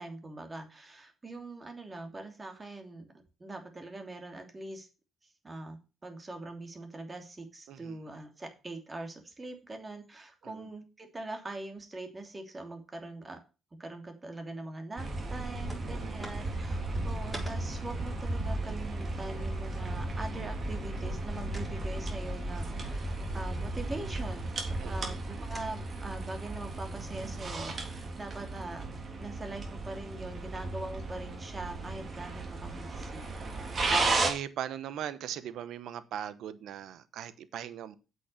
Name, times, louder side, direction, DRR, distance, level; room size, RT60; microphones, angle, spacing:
voice 1, 0.0-3.0 3.4-4.9 5.4-13.4 13.8-24.5 24.8-28.9 29.2-33.3, right 2 dB, 25° right, 2.8 m, -42 dB
voice 2, 7.7-8.0 10.4-10.7 15.9-16.2 24.8-25.1 34.2-38.0, right 10 dB, 75° right, 0.9 m, -39 dB
sound 1, 15.0-34.3, right 2 dB, 40° right, 3.1 m, -35 dB
sound 2, 15.7-15.9 16.2-19.6 21.5-21.7 22.6-24.1 24.7-25.2 25.5-25.7, right 1 dB, 5° right, 5.3 m, -47 dB
sound 3, 17.8-23.9, equal, 15° left, 2.6 m, -42 dB
8.2 x 6.3 x 6.7 m
cardioid pair, 90°, 0 cm